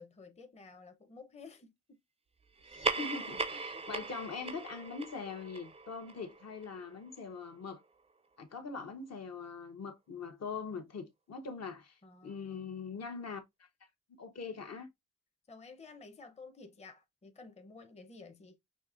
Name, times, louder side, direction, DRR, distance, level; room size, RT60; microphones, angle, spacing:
voice 1, 0.0-2.0 3.5-3.9 12.0-12.8 15.5-18.6, left 4 dB, 20° left, 0.7 m, -53 dB
sound 1, 2.6-7.5, right 3 dB, 20° right, 0.4 m, -39 dB
voice 2, 2.7-7.8 8.4-13.4 14.1-14.9, left 5 dB, 60° left, 0.9 m, -42 dB
6.5 x 2.8 x 2.4 m
wide cardioid pair, 145°, 29 cm